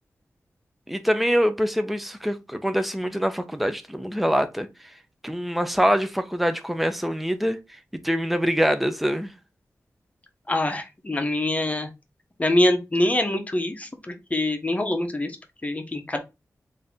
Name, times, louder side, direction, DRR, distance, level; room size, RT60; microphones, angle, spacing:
voice 1, 0.9-4.9 5.2-7.6 8.0-9.3, equal, ahead, 0.5 m, -24 dB
voice 2, 10.5-11.9 12.4-15.4 15.6-16.2, left 1 dB, 25° left, 0.8 m, -24 dB
3.7 x 2.7 x 3.5 m
wide cardioid pair, 115°, 6 cm